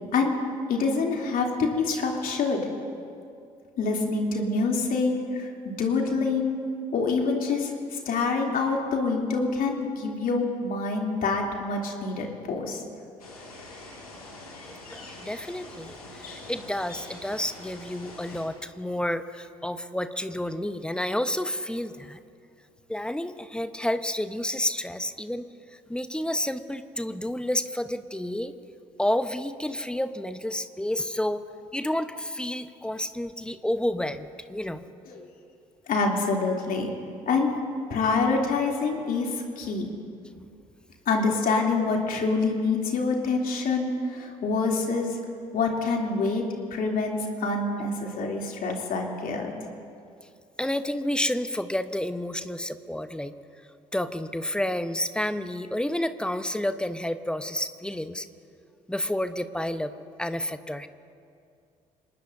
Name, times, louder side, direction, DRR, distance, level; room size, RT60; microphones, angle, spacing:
voice 1, 0.7-2.7 3.8-6.6 6.9-12.8 35.1-35.2 35.9-36.9 37.3-37.5 37.9-39.9 41.1-45.2 45.5-46.4 46.7-49.5, left 4 dB, 50° left, 0 dB, 3.1 m, -26 dB
sound 1, 13.2-18.4, left 2 dB, 85° left, 2.2 m, -44 dB
voice 2, 14.9-22.2 22.9-25.5 25.9-28.5 29.0-31.4 31.7-34.9 50.6-53.3 53.9-58.3 58.9-59.9 60.2-60.9, left 1 dB, 5° left, 10 dB, 1.0 m, -30 dB
27.0 x 19.5 x 2.7 m, 2.4 s
figure-of-eight pair, 50°, 18 cm